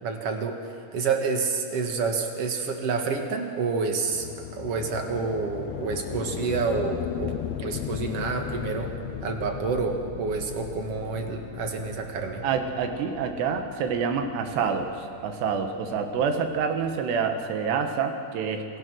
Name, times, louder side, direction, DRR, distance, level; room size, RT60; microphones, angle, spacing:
voice 1, 0.0-8.9 9.2-12.4, right 4 dB, 55° right, 4 dB, 1.8 m, -29 dB
sound 1, 4.1-17.1, left 9 dB, 70° left, 2.6 m, -37 dB
voice 2, 12.4-18.8, right 6 dB, 75° right, 5 dB, 3.6 m, -27 dB
27.5 x 19.0 x 6.4 m, 2.3 s
omnidirectional pair, 5.0 m